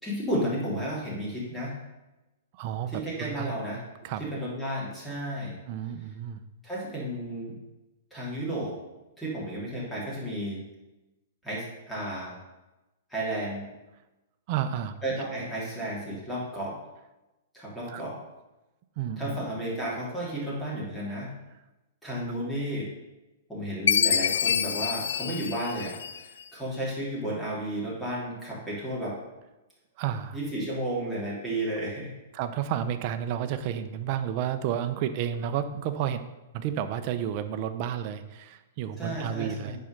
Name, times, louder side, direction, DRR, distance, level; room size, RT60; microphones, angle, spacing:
voice 1, 0.0-1.7 2.9-3.8 4.2-5.6 6.6-7.5 8.1-8.7 9.2-10.6 11.4-12.4 13.1-13.6 15.0-16.7 17.5-18.2 19.2-21.3 22.0-22.9 23.5-29.2 30.3-32.1 39.0-39.8, right 1 dB, 5° left, -7 dB, 3.2 m, -32 dB
voice 2, 2.5-3.6 4.0-4.2 5.7-6.4 14.5-15.0 17.9-18.0 19.0-19.4 30.0-30.4 32.3-36.2 36.5-39.8, right 9 dB, 40° right, 9 dB, 0.7 m, -31 dB
Chime, 23.9-26.4, left 8 dB, 85° left, 0.3 m, -26 dB
9.4 x 4.6 x 6.6 m, 1.0 s
hypercardioid pair, 150°, 0 cm